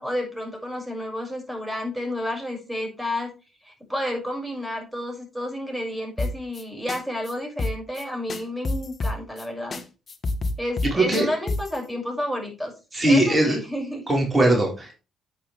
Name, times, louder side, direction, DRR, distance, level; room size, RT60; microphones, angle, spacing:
voice 1, 0.0-3.3 3.6-9.8 10.6-12.7 13.1-14.0, left 1 dB, 5° right, 1 dB, 6.6 m, -30 dB
sound 1, 6.2-6.6 6.9-7.0 7.2-7.3 7.6-8.0 8.3-9.4 9.7-9.8 10.1-11.8, left 2 dB, 40° left, 1.6 m, -27 dB
voice 2, 10.9-11.3 12.9-13.6 14.1-14.9, right 1 dB, 25° right, 1 dB, 4.7 m, -20 dB
10.5 x 8.6 x 3.5 m, 0.30 s
figure-of-eight pair, 45°, 0 cm